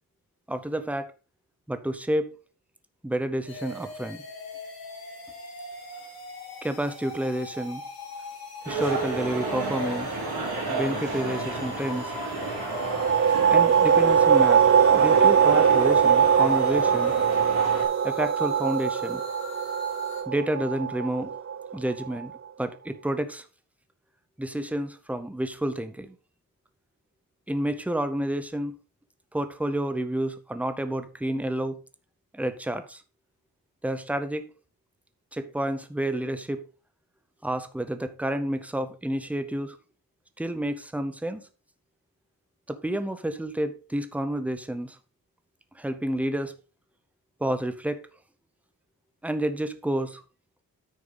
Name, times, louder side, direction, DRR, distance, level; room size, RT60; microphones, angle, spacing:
voice 1, 0.5-1.1 1.7-2.3 3.0-4.2 6.6-7.8 8.7-10.1 10.7-12.1 13.5-17.1 18.0-19.2 20.3-21.3 21.7-22.3 22.6-23.4 24.4-26.1 27.5-28.7 29.3-31.8 32.3-33.0 33.8-34.5 35.3-36.6 37.4-39.8 40.4-41.4 42.7-45.0 45.8-46.5 47.4-48.0 49.2-50.2, right 1 dB, 5° right, 0.7 m, -29 dB
sound 1, 3.5-20.2, left 2 dB, 80° left, 4.1 m, -42 dB
sound 2, 8.7-17.9, right 2 dB, 85° right, 3.7 m, -32 dB
sound 3, 12.7-22.1, right 7 dB, 40° right, 0.5 m, -21 dB
9.3 x 6.4 x 4.0 m
wide cardioid pair, 160°, 37 cm